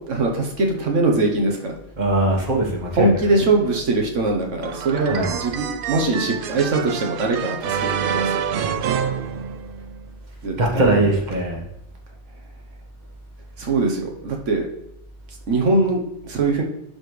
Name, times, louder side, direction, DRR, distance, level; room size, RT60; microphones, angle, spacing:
voice 1, 0.1-1.7 3.0-8.4 10.4-11.0 13.6-14.7 15.5-16.6, right 2 dB, 80° right, 1 dB, 1.4 m, -22 dB
voice 2, 2.0-3.4 5.1-5.4 10.6-11.6, right 2 dB, 40° right, 0 dB, 1.5 m, -21 dB
sound 1, 4.6-10.0, right 7 dB, 60° right, 0.6 m, -27 dB
11.5 x 4.2 x 3.3 m, 0.82 s
omnidirectional pair, 1.2 m